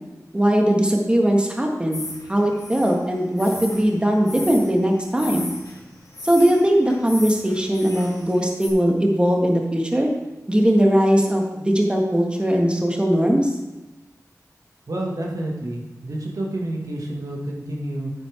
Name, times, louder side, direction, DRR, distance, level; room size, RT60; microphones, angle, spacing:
voice 1, 0.3-2.0 2.3-5.5 6.2-10.1 10.5-13.5, equal, 15° right, 1 dB, 1.5 m, -19 dB
sound 1, 1.9-8.7, left 2 dB, 75° left, 2.4 m, -37 dB
voice 2, 14.9-18.1, right 1 dB, 70° right, -1 dB, 1.7 m, -29 dB
9.5 x 8.7 x 3.5 m, 1.1 s
wide cardioid pair, 55°, 6 cm